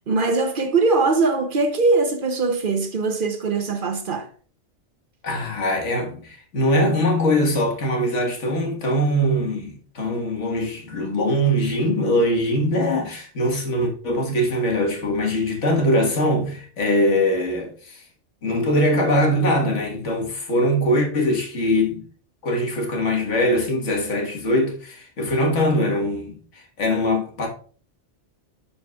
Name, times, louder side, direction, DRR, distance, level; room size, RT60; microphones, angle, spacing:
voice 1, 0.1-4.3, right 3 dB, 50° right, 0.8 m, -21 dB
voice 2, 5.2-18.0 18.4-22.0 22.4-27.5, equal, 85° left, 1.8 m, -22 dB
12.0 x 4.3 x 2.3 m
omnidirectional pair, 1.2 m